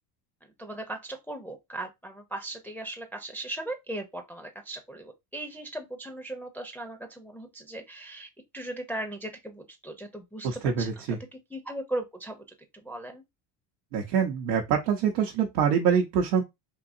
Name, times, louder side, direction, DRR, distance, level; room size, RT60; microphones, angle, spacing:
voice 1, 0.6-10.5 10.8-12.4 12.8-13.2, right 1 dB, 5° left, 0.5 m, -38 dB
voice 2, 10.4-11.2 13.9-16.4, right 7 dB, 85° right, 0.8 m, -25 dB
3.7 x 2.7 x 2.5 m
supercardioid pair, 85°, 48 cm